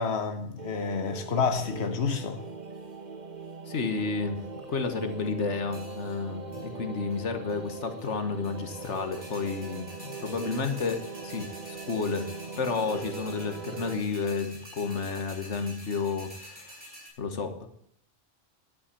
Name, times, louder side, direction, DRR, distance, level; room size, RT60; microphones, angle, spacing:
voice 1, 0.0-2.4, left 5 dB, 65° left, 1.4 m, -29 dB
sound 1, 0.6-14.0, right 4 dB, 40° right, 1.3 m, -41 dB
sound 2, 2.5-2.9 3.5-4.0 4.5-5.1 5.7-6.2 6.5-6.7 7.1-7.2 7.5-8.1 8.4-17.1, equal, 5° left, 6.7 m, -48 dB
voice 2, 3.7-4.4 4.7-12.3 12.6-16.8 17.2-17.7, left 4 dB, 80° left, 1.7 m, -31 dB
11.5 x 8.7 x 8.3 m
omnidirectional pair, 1.2 m